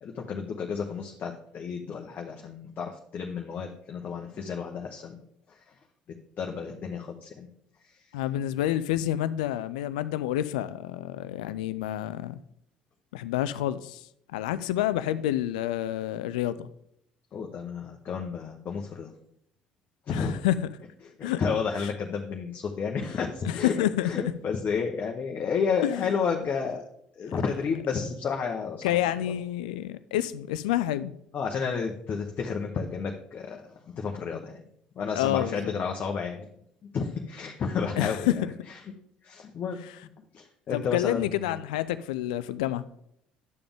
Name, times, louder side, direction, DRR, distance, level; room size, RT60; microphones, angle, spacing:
voice 1, 0.0-5.2 5.5-5.7 6.4-7.5 7.9-8.1 14.5-14.6 17.3-19.1 20.1-20.3 21.2-26.8 27.2-29.2 31.3-34.6 34.9-36.5 36.9-38.5 39.2-39.8 40.2-41.4, left 5 dB, 45° left, 1.0 m, -31 dB
voice 2, 8.1-12.4 13.1-16.7 20.1-20.7 21.2-21.4 23.5-24.1 25.8-26.1 28.8-31.1 35.2-35.7 38.0-38.5 40.7-42.8, left 13 dB, 75° left, 0.4 m, -28 dB
10.5 x 6.9 x 3.6 m
hypercardioid pair, 55°, 4 cm